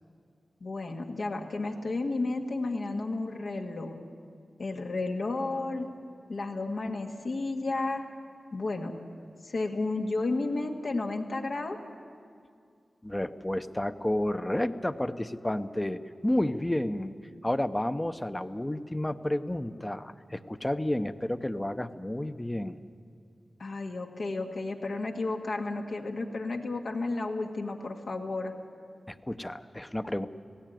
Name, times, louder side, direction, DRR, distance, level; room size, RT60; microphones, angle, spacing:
voice 1, 0.6-4.0 4.6-5.9 6.3-8.0 8.5-8.9 9.4-11.8 23.6-28.5, left 3 dB, 75° left, 2 dB, 1.8 m, -32 dB
voice 2, 13.0-17.1 17.4-22.8 29.1-30.3, left 1 dB, 15° left, 10 dB, 0.8 m, -31 dB
17.5 x 16.5 x 9.2 m, 2.3 s
cardioid pair, 55°, 0 cm